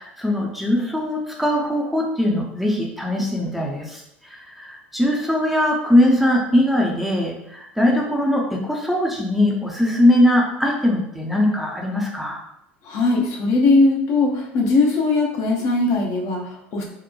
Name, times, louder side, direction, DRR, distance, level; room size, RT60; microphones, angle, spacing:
voice 1, 0.0-12.4, left 1 dB, ahead, -2 dB, 0.5 m, -21 dB
voice 2, 12.8-16.8, left 3 dB, 50° left, 0 dB, 0.6 m, -19 dB
3.0 x 2.1 x 2.3 m, 0.82 s
figure-of-eight pair, 70°, 6 cm